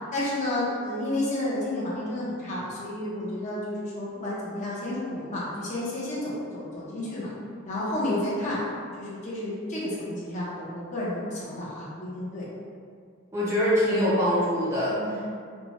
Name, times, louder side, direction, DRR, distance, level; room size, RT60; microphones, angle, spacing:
voice 1, 0.1-7.3 7.7-8.6 8.9-12.5 14.9-15.4, left 1 dB, 35° left, -7 dB, 0.5 m, -31 dB
voice 2, 13.3-15.4, equal, 15° right, -9 dB, 0.4 m, -24 dB
2.6 x 2.1 x 2.8 m, 2.2 s
head